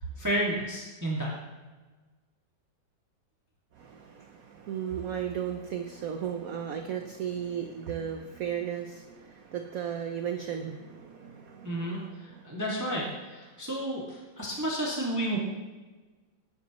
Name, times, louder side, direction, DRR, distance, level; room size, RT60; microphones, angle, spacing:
voice 1, 0.2-1.3 11.6-15.4, right 1 dB, 10° right, -5 dB, 2.1 m, -31 dB
voice 2, 3.7-12.6, right 8 dB, 60° right, 5 dB, 1.1 m, -35 dB
18.0 x 10.0 x 3.1 m, 1.3 s
omnidirectional pair, 2.0 m